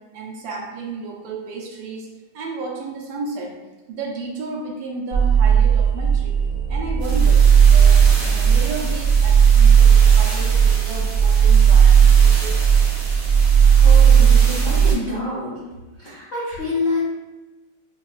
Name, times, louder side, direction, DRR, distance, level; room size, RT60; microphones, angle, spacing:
voice 1, 0.0-2.1 2.3-3.6 3.9-6.4 6.7-12.7, right 3 dB, 75° right, -2 dB, 1.3 m, -33 dB
sound 1, 5.1-14.9, right 7 dB, 50° right, 0.9 m, -14 dB
voice 2, 13.8-15.6 16.0-17.1, left 3 dB, 50° left, -10 dB, 0.7 m, -26 dB
5.7 x 2.2 x 2.3 m, 1.1 s
omnidirectional pair, 2.2 m